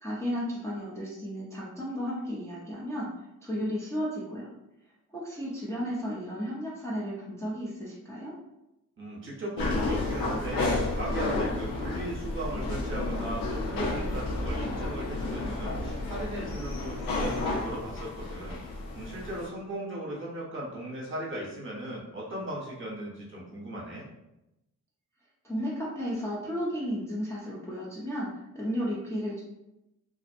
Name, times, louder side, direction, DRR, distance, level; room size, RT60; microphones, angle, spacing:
voice 1, 0.0-3.1 3.4-4.5 5.1-8.3 25.4-28.3 28.5-29.4, equal, 10° left, -7 dB, 0.5 m, -33 dB
voice 2, 9.0-24.1, right 1 dB, 35° right, -5 dB, 0.8 m, -37 dB
sound 1, 9.6-19.5, left 2 dB, 80° left, 0.6 m, -31 dB
2.5 x 2.0 x 2.5 m, 0.92 s
cardioid pair, 105°, 34 cm